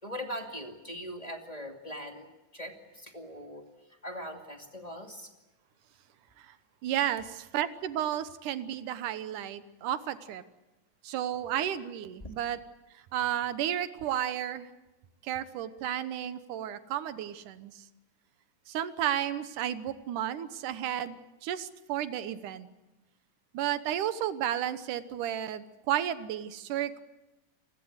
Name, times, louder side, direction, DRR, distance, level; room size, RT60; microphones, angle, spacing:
voice 1, 0.0-2.3 2.5-3.6 4.0-5.3 12.2-12.3, equal, 15° left, 2 dB, 2.2 m, -41 dB
voice 2, 6.8-10.4 11.0-12.6 12.9-14.7 15.2-17.9 18.7-22.7 23.5-27.0, right 11 dB, 80° right, 12 dB, 2.6 m, -33 dB
29.0 x 20.5 x 8.0 m, 1.0 s
omnidirectional pair, 3.6 m